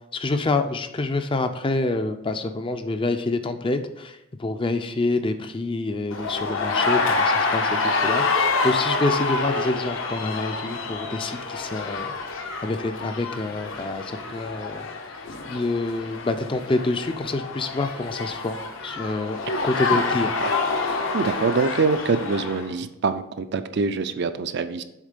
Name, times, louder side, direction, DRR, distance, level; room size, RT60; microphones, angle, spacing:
voice 1, 0.1-12.2 12.6-14.9 15.5-18.6 18.8-20.3, left 2 dB, 25° left, 8 dB, 0.4 m, -27 dB
sound 1, 6.1-22.7, left 3 dB, 65° left, 0.8 m, -27 dB
voice 2, 21.1-24.8, right 4 dB, 55° right, 10 dB, 0.4 m, -24 dB
7.3 x 3.6 x 5.1 m, 0.87 s
head